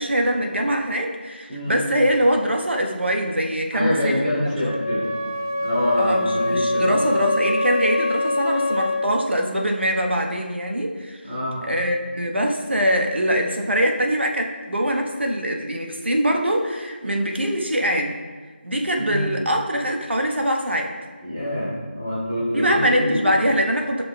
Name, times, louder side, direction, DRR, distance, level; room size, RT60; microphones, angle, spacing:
voice 1, 0.0-4.2 6.0-11.2 11.6-18.2 18.6-20.9 22.5-24.0, equal, 80° right, 2 dB, 1.1 m, -23 dB
voice 2, 1.5-1.8 3.7-5.1 5.6-7.0 11.3-11.6 19.0-19.3 21.2-23.2, left 1 dB, 20° right, -10 dB, 2.5 m, -25 dB
Wind instrument woodwind instrument, 4.6-9.1, left 2 dB, 15° left, 0.5 m, -24 dB
14.0 x 5.7 x 2.2 m, 1.5 s
figure-of-eight pair, 170°, 6 cm